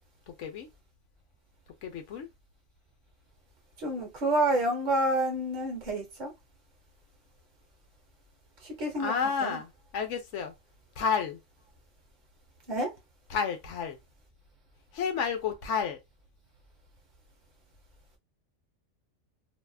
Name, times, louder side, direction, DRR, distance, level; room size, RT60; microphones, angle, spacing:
voice 1, 0.3-0.7 1.8-2.3 9.0-10.5 11.0-11.4 13.3-14.0 14.9-16.0, left 6 dB, 70° left, 1.0 m, -31 dB
voice 2, 3.8-6.3 8.6-9.6 12.7-12.9, right 1 dB, 40° right, 1.0 m, -29 dB
2.7 x 2.4 x 2.3 m
omnidirectional pair, 1.3 m